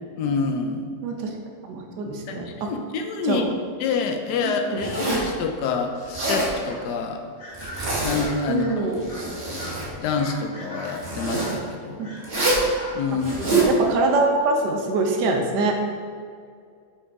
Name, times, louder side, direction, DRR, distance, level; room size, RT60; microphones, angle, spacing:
voice 1, 0.2-0.9 2.3-3.4 3.8-7.2 8.0-8.8 9.5-9.6 10.0-12.1 12.9-13.7, left 5 dB, 90° left, 5 dB, 1.2 m, -27 dB
voice 2, 1.0-1.3 1.6-2.7 3.2-3.4 4.4-4.8 8.5-9.0 12.0-12.1 13.5-15.7, right 3 dB, 85° right, 2 dB, 1.3 m, -24 dB
Zipper (clothing), 4.8-5.3 6.0-6.5 7.5-8.3 8.9-9.9 11.0-11.5 12.2-12.7 13.2-13.7, right 2 dB, 40° right, 1.5 m, -25 dB
sound 1, 6.6-6.9 7.4-8.7 9.1-9.3 9.6-9.8 10.1-11.6 12.0-13.6, left 1 dB, 45° left, 1.6 m, -39 dB
5.4 x 5.0 x 3.5 m, 2.2 s
omnidirectional pair, 1.7 m